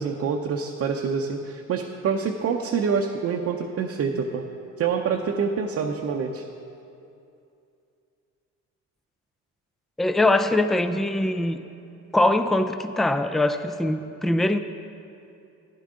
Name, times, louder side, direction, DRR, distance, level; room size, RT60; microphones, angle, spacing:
voice 1, 0.0-4.5 4.8-6.4, right 6 dB, 50° right, 2 dB, 0.7 m, -26 dB
voice 2, 10.0-11.6 12.1-14.6, left 2 dB, ahead, 10 dB, 0.3 m, -22 dB
12.5 x 10.5 x 3.8 m, 2.6 s
cardioid pair, 115°, 30 cm